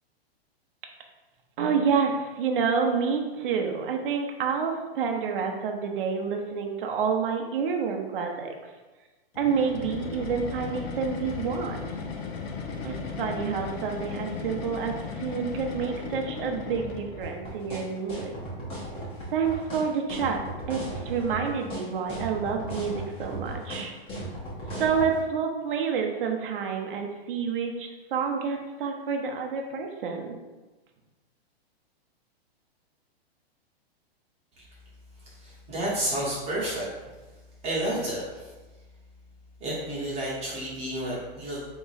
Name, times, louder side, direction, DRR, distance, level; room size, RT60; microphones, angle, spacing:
voice 1, 1.6-8.5 9.4-11.9 12.8-18.3 19.3-20.4 20.7-23.9 24.8-30.4, right 6 dB, 60° right, 2 dB, 0.8 m, -28 dB
sound 1, 9.3-17.4, left 5 dB, 75° left, 0.7 m, -36 dB
sound 2, 17.2-25.1, right 1 dB, 20° left, 1.0 m, -36 dB
voice 2, 35.2-36.9 37.6-38.5 39.6-41.6, right 1 dB, 20° right, -8 dB, 1.0 m, -31 dB
3.5 x 3.0 x 4.1 m, 1.2 s
hypercardioid pair, 150°, 31 cm